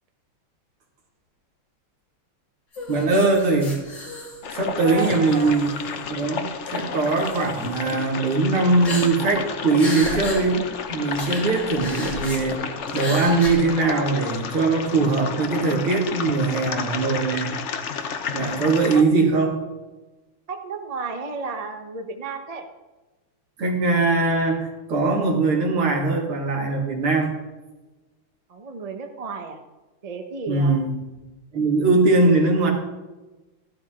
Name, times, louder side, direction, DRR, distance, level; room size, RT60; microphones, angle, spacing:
sound 1, 2.7-4.6 4.9-6.1 6.7-6.8 7.2-7.7 8.8-9.4 9.7-10.4 10.7-10.8 11.1-12.4 12.9-13.5, left 2 dB, 55° left, 4.0 m, -34 dB
voice 1, 2.9-3.7 4.5-5.7 6.1-12.7 12.9-17.5 18.3-19.5 23.6-27.3 30.5-31.0 31.5-32.7, right 3 dB, 75° right, 0 dB, 3.1 m, -21 dB
sound 2, 4.4-19.0, left 6 dB, 70° left, 0.6 m, -31 dB
voice 2, 4.8-5.7 18.6-19.0 20.5-22.7 28.5-29.6 30.0-30.8 32.2-32.4, right 4 dB, 30° right, 5 dB, 0.6 m, -33 dB
14.5 x 12.0 x 3.8 m, 1.1 s
omnidirectional pair, 2.4 m